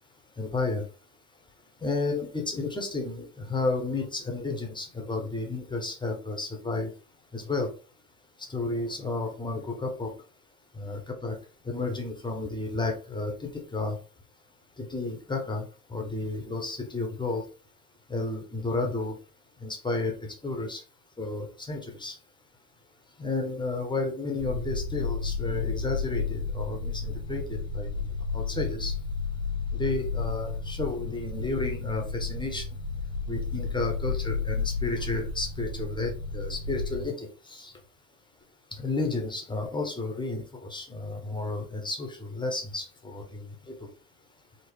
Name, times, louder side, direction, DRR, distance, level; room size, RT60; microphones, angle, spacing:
voice 1, 0.4-0.8 1.8-6.9 7.3-7.7 8.5-10.1 10.8-11.3 11.7-14.0 14.9-17.4 18.1-19.1 19.6-20.1 20.4-20.8 21.2-22.1 23.2-27.9 28.3-28.9 29.7-32.7 33.3-37.7 38.8-43.5, left 3 dB, 10° left, 3 dB, 0.9 m, -32 dB
sound 1, 24.4-37.1, left 4 dB, 85° left, 0.9 m, -32 dB
3.6 x 2.1 x 3.4 m, 0.36 s
hypercardioid pair, 75°, 46 cm